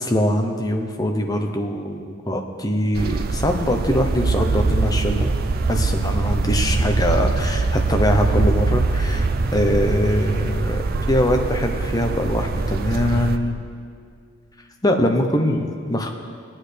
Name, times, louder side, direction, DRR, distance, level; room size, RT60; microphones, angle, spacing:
voice 1, 0.0-5.3 5.7-10.8 11.1-13.6 14.8-16.1, left 1 dB, 15° left, 3 dB, 0.7 m, -22 dB
sound 1, 2.9-13.4, right 3 dB, 45° right, 0.4 m, -22 dB
18.5 x 8.9 x 3.3 m, 2.2 s
head